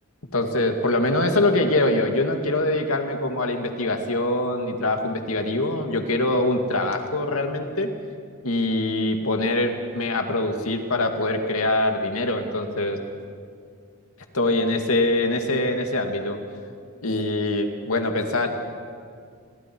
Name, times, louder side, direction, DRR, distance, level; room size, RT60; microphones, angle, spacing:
voice 1, 0.3-7.9 8.4-13.0 14.3-16.4 17.0-18.5, left 2 dB, 80° left, 4 dB, 2.2 m, -23 dB
30.0 x 23.0 x 4.7 m, 2.1 s
head